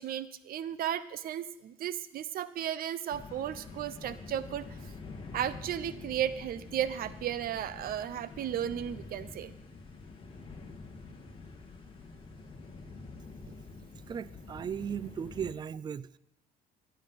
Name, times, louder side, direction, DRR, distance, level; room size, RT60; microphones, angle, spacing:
voice 1, 0.0-4.7 5.3-9.5, right 10 dB, 60° right, 16 dB, 0.7 m, -34 dB
sound 1, 3.1-15.5, left 3 dB, 30° left, 2.3 m, -47 dB
voice 2, 14.0-16.2, right 7 dB, 25° right, 19 dB, 0.3 m, -37 dB
16.0 x 9.1 x 5.8 m, 0.90 s
cardioid pair, 110°, 17 cm